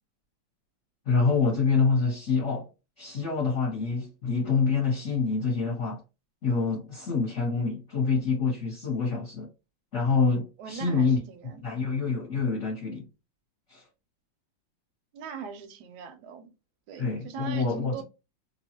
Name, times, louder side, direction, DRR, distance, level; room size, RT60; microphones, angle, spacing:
voice 1, 1.0-2.7 3.0-6.0 6.4-9.5 9.9-11.2 11.6-13.1 13.7-13.8 17.0-18.0, left 4 dB, 45° left, 1.2 m, -26 dB
voice 2, 10.6-11.9 15.1-16.5 16.9-18.0, right 6 dB, 70° right, 1.1 m, -40 dB
2.9 x 2.3 x 2.8 m
omnidirectional pair, 2.0 m